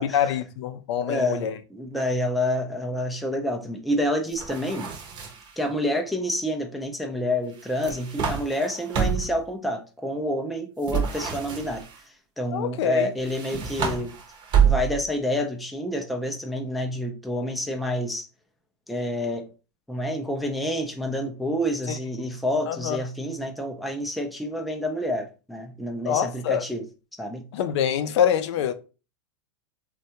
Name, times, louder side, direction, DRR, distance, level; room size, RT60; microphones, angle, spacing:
voice 1, 0.0-1.5 12.5-13.1 22.7-23.0 26.0-26.6 27.5-28.7, left 9 dB, 65° left, 0.4 m, -25 dB
voice 2, 1.0-4.9 5.6-11.8 12.4-14.1 14.6-18.3 18.9-19.5 19.9-26.8 27.2-27.4, left 1 dB, ahead, 0.3 m, -28 dB
sound 1, 4.3-5.6 7.6-9.4 10.8-12.0 13.2-15.2, right 7 dB, 30° right, 0.7 m, -27 dB
3.4 x 2.2 x 2.8 m
supercardioid pair, 140°, 15 cm